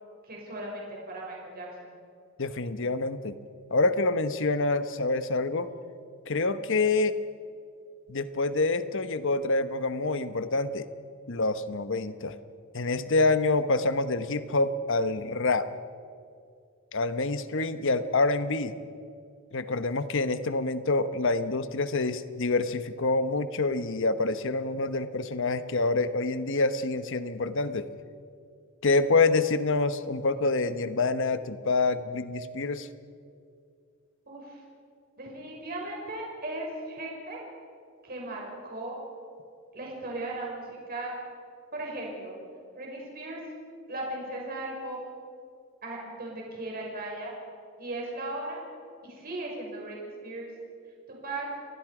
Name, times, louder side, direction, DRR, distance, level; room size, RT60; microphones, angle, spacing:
voice 1, 0.3-1.9 34.3-34.6 35.2-37.4 38.0-39.0 39.7-41.1 41.7-42.4 42.8-43.4 43.9-45.0 45.8-47.3 47.8-48.6 49.0-50.5 51.1-51.5, right 2 dB, 45° right, -2 dB, 5.7 m, -37 dB
voice 2, 2.4-3.3 3.7-5.7 6.3-7.2 8.1-10.9 11.3-12.3 12.7-15.7 16.9-18.7 19.5-27.9 28.8-32.9, left 3 dB, 65° left, 11 dB, 1.1 m, -27 dB
29.5 x 20.0 x 5.0 m, 2.3 s
head